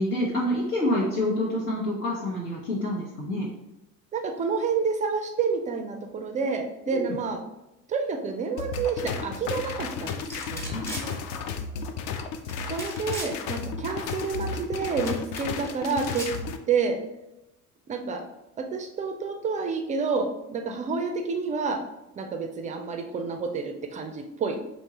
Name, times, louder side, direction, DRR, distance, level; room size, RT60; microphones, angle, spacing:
voice 1, 0.0-3.5 6.9-7.0 10.7-10.8, left 1 dB, 70° left, -6 dB, 1.1 m, -27 dB
voice 2, 4.1-7.4 7.9-11.1 12.7-16.3 16.7-17.0 17.9-18.2 18.7-21.8 22.2-24.6, right 5 dB, 20° right, 5 dB, 0.3 m, -29 dB
sound 1, 8.6-16.6, left 5 dB, 45° left, 0.5 m, -33 dB
sound 2, 10.3-11.1 12.5-13.3 15.0-15.7 16.0-16.3, equal, 5° left, 0.9 m, -37 dB
4.4 x 2.9 x 2.9 m, 0.93 s
figure-of-eight pair, 60°, 44 cm